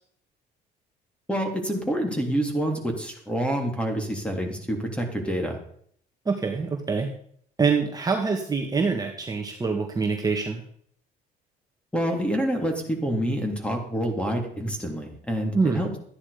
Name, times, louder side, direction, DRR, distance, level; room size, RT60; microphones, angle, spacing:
voice 1, 1.3-5.6 11.9-15.9, equal, 5° left, 3 dB, 3.3 m, -27 dB
voice 2, 6.3-7.1 7.6-10.6 15.5-15.8, right 4 dB, 20° right, 2 dB, 1.8 m, -25 dB
13.5 x 9.9 x 5.1 m, 0.62 s
cardioid pair, 110°, 17 cm